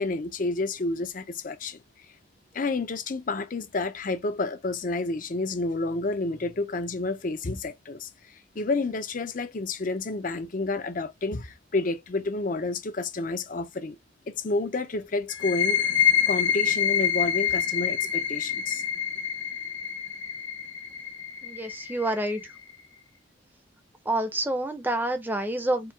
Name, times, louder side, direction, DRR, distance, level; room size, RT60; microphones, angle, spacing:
voice 1, 0.0-1.8 2.5-14.0 14.3-15.9 16.3-18.8, left 3 dB, 45° left, 0.5 m, -30 dB
sound 1, 15.3-22.7, left 8 dB, 70° left, 1.0 m, -27 dB
voice 2, 21.4-22.5 24.1-25.9, right 1 dB, 10° right, 0.6 m, -28 dB
4.6 x 2.3 x 3.4 m
head